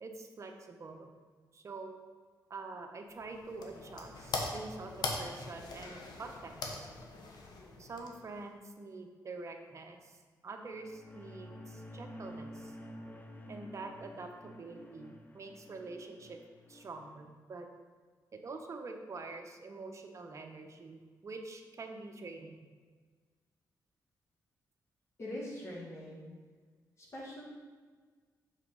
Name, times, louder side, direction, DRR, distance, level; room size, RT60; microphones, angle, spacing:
voice 1, 0.0-1.1 1.5-2.0 2.5-6.9 7.8-10.2 10.4-12.8 13.5-16.4 16.7-17.7 18.3-22.6, right 3 dB, 45° right, 4 dB, 0.8 m, -46 dB
sound 1, 3.1-8.5, left 3 dB, 75° left, 0.9 m, -41 dB
sound 2, 10.6-17.2, equal, 25° left, 0.7 m, -50 dB
voice 2, 25.2-26.3 27.0-27.5, left 1 dB, 45° left, -6 dB, 1.9 m, -43 dB
5.6 x 4.0 x 5.0 m, 1.5 s
cardioid pair, 80°, 7 cm